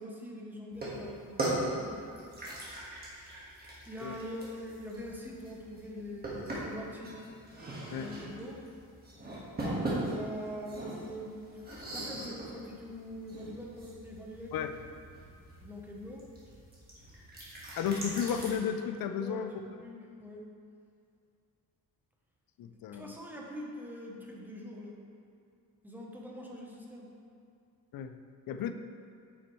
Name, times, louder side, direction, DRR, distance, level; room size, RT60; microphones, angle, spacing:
voice 1, 0.0-2.0 3.8-7.1 7.9-8.6 10.0-14.7 15.6-16.2 19.1-20.4 22.9-25.0 25.8-27.1, equal, 5° right, -2 dB, 0.7 m, -43 dB
sound 1, 0.7-18.5, right 1 dB, 25° right, 1.5 m, -40 dB
voice 2, 17.8-19.5 22.6-23.1 27.9-28.2 28.5-28.7, left 7 dB, 70° left, 8 dB, 0.5 m, -33 dB
8.5 x 5.9 x 3.1 m, 2.4 s
wide cardioid pair, 175°, 36 cm